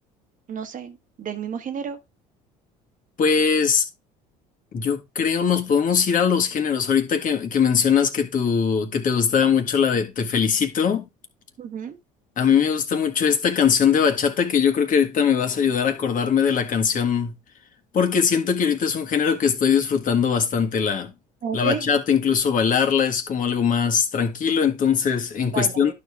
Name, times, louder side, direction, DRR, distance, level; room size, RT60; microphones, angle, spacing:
voice 1, 0.5-2.0 11.6-12.0 21.4-21.8 25.5-25.9, right 7 dB, 45° right, 1.3 m, -31 dB
voice 2, 3.2-3.9 4.7-11.1 12.4-17.3 17.9-21.1 21.5-25.9, left 7 dB, 45° left, 1.8 m, -21 dB
11.5 x 4.9 x 3.6 m
supercardioid pair, 80°, 18 cm